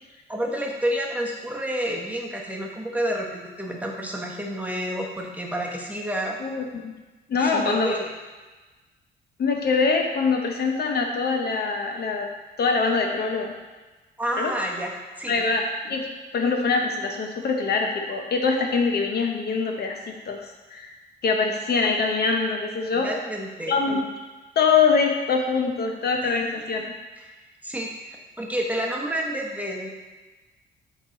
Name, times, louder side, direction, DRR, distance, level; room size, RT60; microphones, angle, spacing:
voice 1, 0.3-6.4 7.4-8.1 14.2-14.9 15.2-15.3 22.9-23.8 26.2-26.3 27.2-27.4 27.6-27.9 28.4-29.9, equal, 5° right, -1 dB, 0.9 m, -29 dB
voice 2, 6.4-6.9 7.3-8.0 9.4-12.3 12.6-13.5 14.4-14.5 15.3-20.4 20.7-20.9 21.2-23.1 23.7-24.0 24.6-26.8, left 4 dB, 55° left, 2 dB, 0.8 m, -24 dB
8.0 x 3.1 x 4.0 m, 1.2 s
cardioid pair, 90°, 20 cm